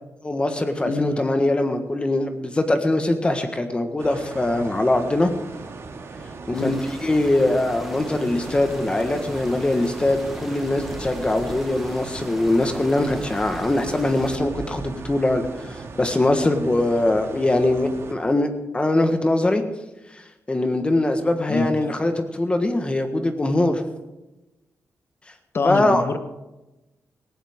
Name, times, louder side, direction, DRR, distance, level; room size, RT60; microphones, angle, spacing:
voice 1, 0.2-5.3 6.5-6.8 7.0-15.4 15.7-19.6 20.5-23.8 25.6-26.0, left 2 dB, 20° left, 7 dB, 1.4 m, -22 dB
voice 2, 0.8-1.2 6.5-6.8 21.5-21.9 25.5-26.2, left 3 dB, 45° left, 10 dB, 1.2 m, -25 dB
sound 1, 4.0-18.1, right 4 dB, 55° right, 2.1 m, -38 dB
sound 2, 6.5-14.4, equal, ahead, 1.4 m, -40 dB
18.5 x 16.5 x 3.7 m, 1.0 s
wide cardioid pair, 135°, 6 cm